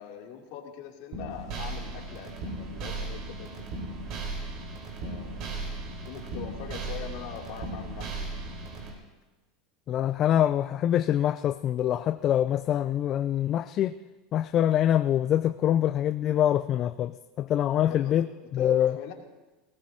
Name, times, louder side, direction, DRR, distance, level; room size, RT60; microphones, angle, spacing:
voice 1, 0.0-3.9 5.0-5.8 6.0-8.3 17.8-18.2 18.6-19.1, left 9 dB, 60° left, 2.9 m, -42 dB
sound 1, 1.1-8.9, right 3 dB, 55° right, 4.2 m, -36 dB
voice 2, 9.9-13.9 14.3-18.9, left 11 dB, 45° left, 0.4 m, -25 dB
19.0 x 18.5 x 2.8 m
hypercardioid pair, 85°, 0 cm